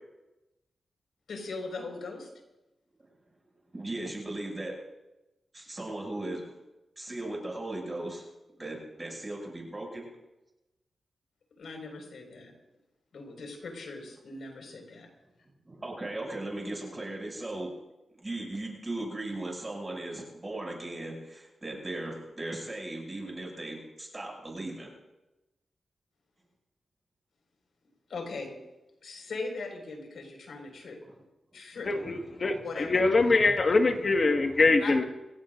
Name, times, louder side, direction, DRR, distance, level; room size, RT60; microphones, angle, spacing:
voice 1, 1.3-2.3 11.6-12.5 13.1-15.1 28.1-28.6 29.0-31.0 31.5-31.9 32.6-33.0 34.8-34.9, left 3 dB, 75° left, 1 dB, 5.1 m, -39 dB
voice 2, 3.7-4.7 5.5-6.4 7.0-8.2 8.6-10.1 15.7-17.7 18.2-24.9 31.1-31.2 32.3-32.5, right 2 dB, 20° right, -1 dB, 6.8 m, -37 dB
voice 3, 31.9-35.0, left 3 dB, 45° left, 4 dB, 1.7 m, -24 dB
27.5 x 17.0 x 2.6 m, 0.99 s
wide cardioid pair, 100°, 0 cm